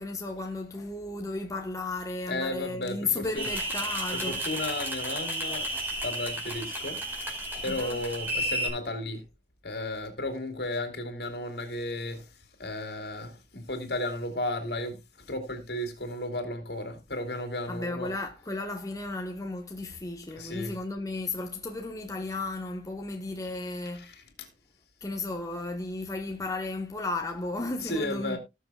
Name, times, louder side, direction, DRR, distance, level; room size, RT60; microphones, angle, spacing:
voice 1, 0.0-4.4 7.7-8.0 17.7-24.1 25.0-28.4, left 2 dB, 20° left, 1.2 m, -34 dB
voice 2, 2.3-3.5 4.1-5.7 6.0-7.0 7.6-9.2 9.6-12.3 12.6-18.1 20.3-20.7 23.9-24.5 27.8-28.4, left 1 dB, 60° left, 3.3 m, -34 dB
sound 1, 3.4-8.7, right 1 dB, 10° right, 4.9 m, -32 dB
18.5 x 7.2 x 2.4 m
head